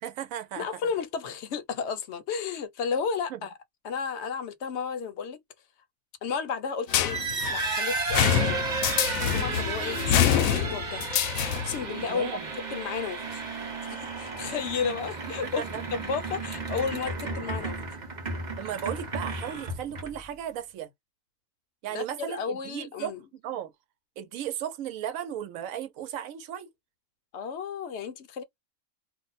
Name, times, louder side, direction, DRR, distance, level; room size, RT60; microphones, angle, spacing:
voice 1, 0.0-0.8 3.3-3.4 12.0-12.5 15.4-15.8 18.6-20.9 21.8-23.7 24.2-26.7, right 10 dB, 80° right, 1.1 m, -35 dB
voice 2, 0.6-3.5 3.8-5.4 6.2-7.2 7.5-8.5 9.2-11.2 11.6-12.4 12.7-13.4 13.8-17.8 21.9-23.2 27.3-28.4, left 6 dB, 65° left, 0.8 m, -33 dB
sound 1, 6.9-11.9, left 10 dB, 85° left, 1.0 m, -26 dB
sound 2, 6.9-20.3, right 3 dB, 35° right, 1.0 m, -33 dB
2.6 x 2.1 x 3.9 m
omnidirectional pair, 1.4 m